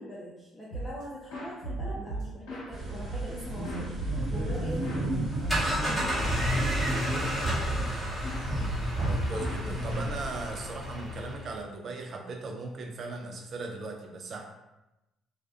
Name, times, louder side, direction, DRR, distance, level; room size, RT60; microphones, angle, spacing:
voice 1, 0.0-7.7, equal, 20° left, -8 dB, 0.7 m, -42 dB
sound 1, 0.7-1.0 1.3-2.7 3.1-5.1 5.4-5.7 6.0-7.3 7.7-10.3, right 2 dB, 80° left, 0.9 m, -36 dB
sound 2, 2.7-10.1, right 1 dB, 35° right, 1.0 m, -33 dB
sound 3, 5.2-11.6, equal, ahead, 1.2 m, -32 dB
voice 2, 9.0-14.5, right 3 dB, 55° right, 2 dB, 0.5 m, -38 dB
2.5 x 2.2 x 2.4 m, 0.97 s
supercardioid pair, 60°, 0 cm